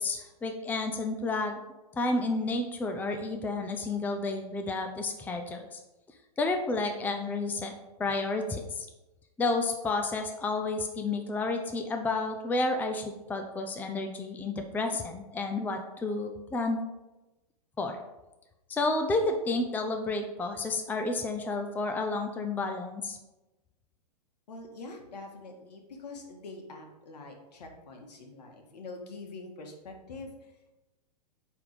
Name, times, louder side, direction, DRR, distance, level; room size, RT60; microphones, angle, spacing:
voice 1, 0.0-1.6 1.9-5.8 6.4-7.7 8.0-8.9 9.4-16.8 17.8-18.0 18.7-23.2, left 3 dB, 10° left, 5 dB, 0.5 m, -31 dB
voice 2, 24.5-30.7, left 3 dB, 70° left, 2 dB, 1.7 m, -45 dB
8.9 x 3.6 x 4.9 m, 1.0 s
hypercardioid pair, 120°, 21 cm